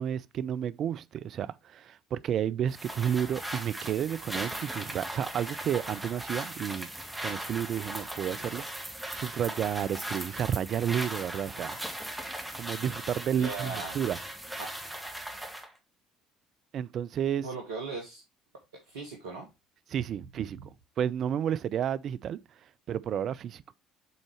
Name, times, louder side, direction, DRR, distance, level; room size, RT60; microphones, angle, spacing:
voice 1, 0.0-6.9 7.2-8.9 9.1-11.8 12.6-14.2 16.7-17.5 19.9-20.6 21.0-22.4 22.9-23.6, right 9 dB, 45° right, 0.3 m, -31 dB
sound 1, 2.7-15.7, right 1 dB, 5° right, 1.5 m, -38 dB
voice 2, 13.4-14.0 14.6-14.7 17.4-18.2 18.7-19.5, right 4 dB, 70° right, 1.0 m, -38 dB
7.0 x 4.0 x 4.6 m
figure-of-eight pair, 55°, 0 cm